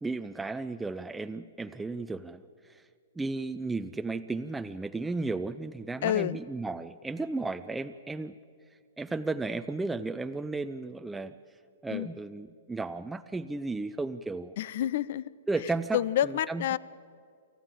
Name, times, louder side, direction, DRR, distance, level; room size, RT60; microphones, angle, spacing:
voice 1, 0.0-2.8 3.2-8.4 9.0-11.4 11.8-14.5 15.5-16.6, right 3 dB, 5° right, 8 dB, 0.5 m, -34 dB
voice 2, 6.0-6.4 11.9-12.1 14.6-15.3 15.9-16.8, left 11 dB, 60° left, 21 dB, 0.6 m, -28 dB
28.0 x 13.5 x 8.3 m, 2.2 s
hypercardioid pair, 135°, 0 cm